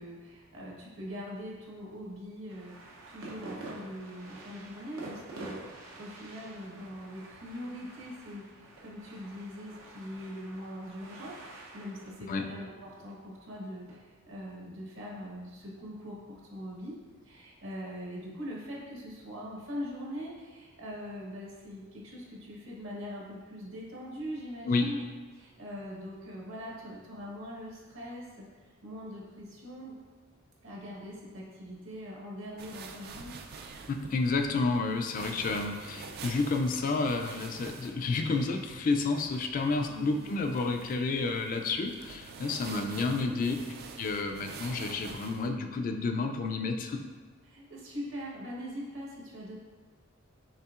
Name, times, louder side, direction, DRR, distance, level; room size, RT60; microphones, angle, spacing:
voice 1, 0.0-11.4 11.7-16.9 17.2-25.0 25.3-29.9 30.6-33.4 39.9-40.3 42.7-43.4 47.4-49.6, equal, 70° right, -4 dB, 1.1 m, -42 dB
sound 1, 2.5-14.0, right 2 dB, 90° right, 0.7 m, -48 dB
sound 2, 32.6-45.5, right 4 dB, 50° right, 0.3 m, -47 dB
voice 2, 33.9-43.5 44.0-47.0, left 3 dB, 40° left, 5 dB, 0.3 m, -30 dB
5.6 x 3.5 x 2.4 m, 1.4 s
head